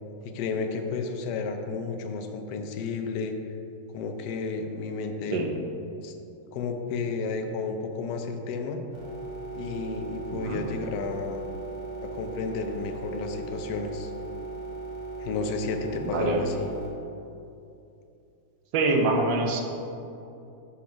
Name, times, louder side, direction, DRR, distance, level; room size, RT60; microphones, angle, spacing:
voice 1, 0.2-3.3 3.9-5.4 6.0-6.1 6.5-8.8 9.5-11.4 12.0-14.1 15.2-16.7, left 4 dB, 70° left, 5 dB, 1.0 m, -32 dB
sound 1, 8.9-16.9, right 3 dB, 25° right, 1.0 m, -38 dB
voice 2, 10.3-10.6 16.0-16.4 18.7-19.6, right 3 dB, 70° right, 3 dB, 1.4 m, -25 dB
5.7 x 5.2 x 5.6 m, 2.7 s
omnidirectional pair, 2.2 m